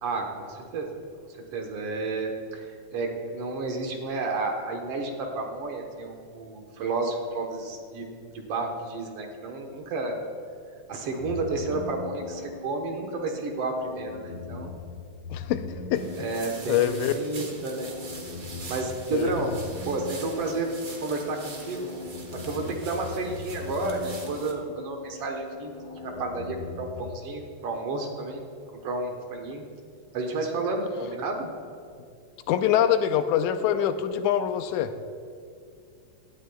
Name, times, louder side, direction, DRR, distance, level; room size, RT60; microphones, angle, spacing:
voice 1, 0.0-1.0 1.5-10.2 10.9-14.8 16.2-17.9 18.7-19.5 19.9-20.7 21.0-21.9 22.4-25.7 26.0-28.5 28.8-29.7 30.1-31.5, right 3 dB, 60° right, 3 dB, 1.9 m, -31 dB
sound 1, 11.1-27.2, left 3 dB, 60° left, 3.0 m, -41 dB
voice 2, 15.3-15.7 15.9-16.1 16.7-17.1 19.1-19.6 32.5-34.9, left 10 dB, 85° left, 10 dB, 2.0 m, -24 dB
sound 2, 15.9-24.5, right 3 dB, 45° right, 1.1 m, -43 dB
17.5 x 12.5 x 2.3 m, 2.3 s
omnidirectional pair, 3.4 m